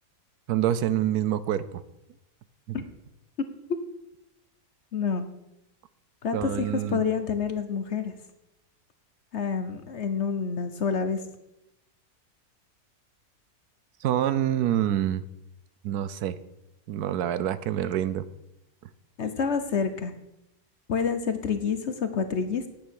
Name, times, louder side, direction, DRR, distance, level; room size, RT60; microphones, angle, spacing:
voice 1, 0.5-1.8 2.7-2.8 6.3-7.0 14.0-15.2 15.8-16.4 16.9-18.2, right 11 dB, 75° right, 15 dB, 1.1 m, -26 dB
voice 2, 4.9-5.3 6.2-8.1 9.3-11.2 19.2-20.1 20.9-22.6, left 6 dB, 50° left, 9 dB, 1.1 m, -28 dB
9.9 x 8.5 x 6.4 m, 0.87 s
omnidirectional pair, 1.7 m